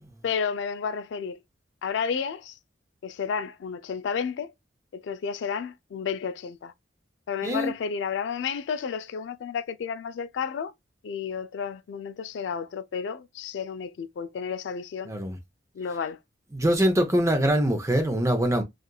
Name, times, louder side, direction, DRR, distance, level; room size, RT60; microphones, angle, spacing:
voice 1, 0.2-1.4 1.8-2.6 3.0-4.5 4.9-6.7 7.3-10.7 11.0-15.1 15.7-16.2, left 6 dB, 75° left, 0.3 m, -31 dB
voice 2, 15.1-15.4 16.5-18.6, right 1 dB, 15° right, 0.6 m, -23 dB
2.8 x 2.5 x 2.2 m
head